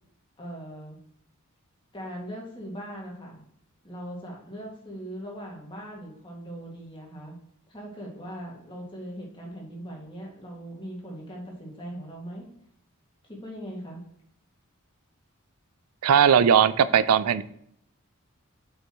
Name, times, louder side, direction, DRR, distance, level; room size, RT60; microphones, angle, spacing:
voice 1, 0.4-1.0 1.9-3.4 3.8-7.4 7.7-12.5 13.2-14.0, equal, 20° left, -2 dB, 2.0 m, -40 dB
voice 2, 16.0-17.4, right 8 dB, 80° right, 16 dB, 0.4 m, -19 dB
7.9 x 5.6 x 3.0 m, 0.72 s
head